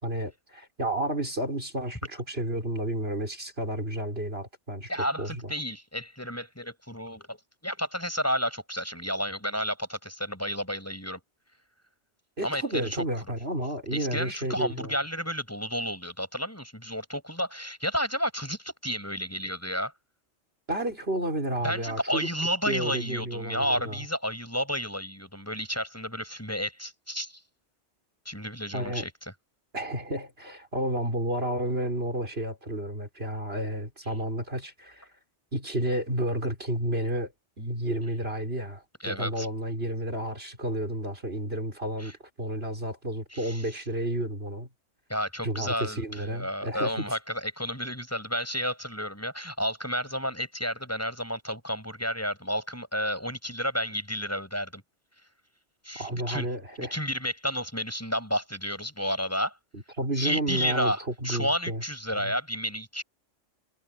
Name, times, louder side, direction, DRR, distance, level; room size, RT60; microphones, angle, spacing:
voice 1, 0.0-4.9 5.2-5.5 12.4-15.0 20.7-22.3 22.7-24.0 28.7-29.1 29.7-35.1 35.5-37.3 37.6-44.7 45.4-47.2 55.9-57.0 59.7-61.8 62.2-62.3, right 1 dB, 60° right, 6.0 m, -31 dB
voice 2, 4.9-11.2 12.4-13.0 13.9-19.9 21.6-27.4 28.3-29.1 39.0-39.5 42.0-42.1 43.3-43.6 45.1-54.8 55.8-56.5 56.8-59.5 60.2-63.0, equal, 10° left, 7.3 m, -31 dB
omnidirectional pair, 1.2 m